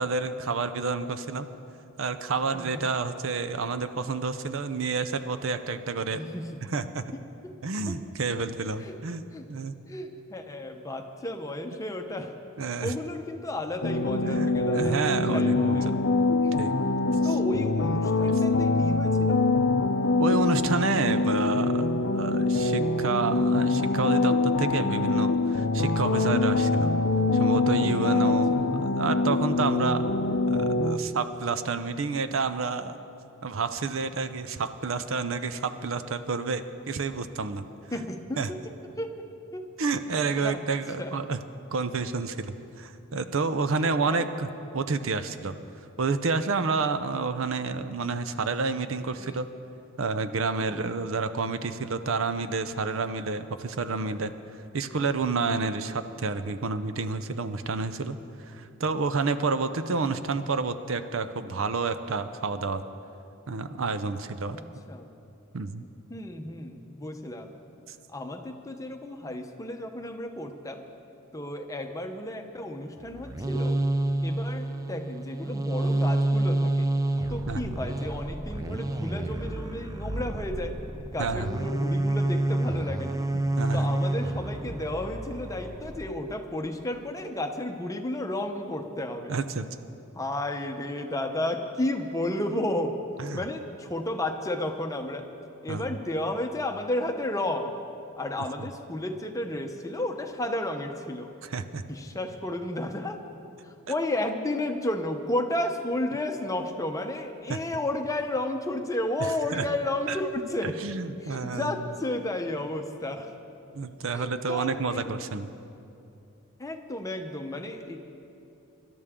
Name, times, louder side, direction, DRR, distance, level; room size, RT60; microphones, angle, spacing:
voice 1, 0.0-1.5 2.0-6.2 6.6-7.0 7.6-9.2 9.5-9.8 12.6-12.9 14.2-16.0 16.6-16.7 17.2-17.4 20.2-21.9 22.1-26.9 27.3-30.0 30.5-33.0 33.4-37.7 38.4-38.5 39.8-41.4 41.7-44.5 44.7-45.5 46.0-49.5 50.0-54.3 54.7-58.2 58.5-62.8 63.5-64.6 65.5-65.8 77.5-77.7 81.2-81.6 83.3-84.0 89.3-89.7 93.2-93.4 95.7-95.9 101.4-101.8 107.5-107.6 109.2-109.6 110.1-110.2 110.6-111.8 113.8-115.5, right 4 dB, 65° right, 11 dB, 0.6 m, -29 dB
voice 2, 2.5-2.9 6.1-6.5 7.1-7.2 7.9-8.0 8.8-8.9 9.3-9.5 9.9-12.3 12.8-15.9 16.4-16.6 17.2-19.4 28.2-28.6 37.7-38.6 39.0-39.1 39.5-39.6 40.1-40.7 41.0-41.2 43.8-44.3 49.2-49.4 50.6-50.8 64.5-65.1 66.1-67.6 68.1-70.8 71.3-73.8 74.2-76.9 77.3-80.7 81.1-83.2 83.7-89.4 90.1-93.0 93.3-95.3 95.6-97.7 98.2-101.3 101.9-103.2 103.6-110.8 111.2-113.3 114.1-115.1 116.6-118.0, left 1 dB, 15° left, 5 dB, 0.8 m, -32 dB
sound 1, 13.8-31.0, left 3 dB, 55° left, 0.6 m, -24 dB
sound 2, 73.0-86.1, right 1 dB, 15° right, 0.5 m, -29 dB
24.0 x 12.0 x 3.7 m, 2.8 s
head